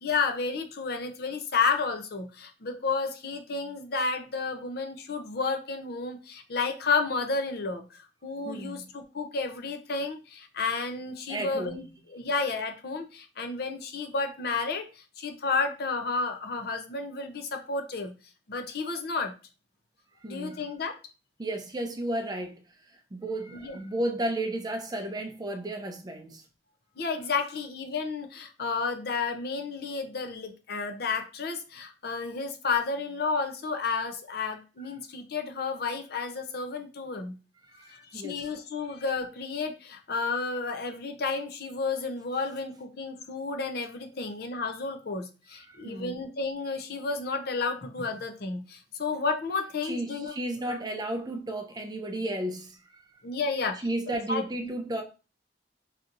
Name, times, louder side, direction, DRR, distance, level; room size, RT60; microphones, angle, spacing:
voice 1, 0.0-18.1 18.5-19.3 20.2-21.0 23.6-23.8 27.0-37.3 37.9-50.3 50.6-50.8 53.2-54.4, left 4 dB, 60° left, 0.6 m, -31 dB
voice 2, 8.4-8.9 11.3-11.9 20.2-20.7 21.4-22.6 22.9-26.4 37.7-38.5 45.6-46.2 49.8-53.0 53.8-55.0, right 1 dB, 20° right, 0.5 m, -33 dB
4.9 x 2.8 x 2.5 m
head